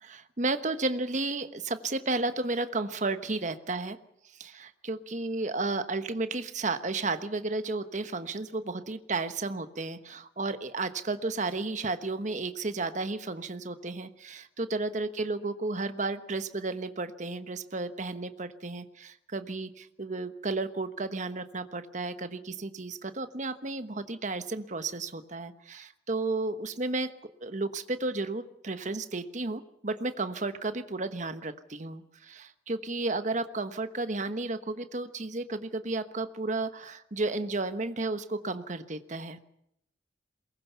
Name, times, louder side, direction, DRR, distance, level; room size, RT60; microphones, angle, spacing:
voice 1, 0.0-4.0 4.4-27.1 27.4-39.4, right 3 dB, 45° right, 10 dB, 1.2 m, -33 dB
22.5 x 20.0 x 7.0 m, 0.77 s
head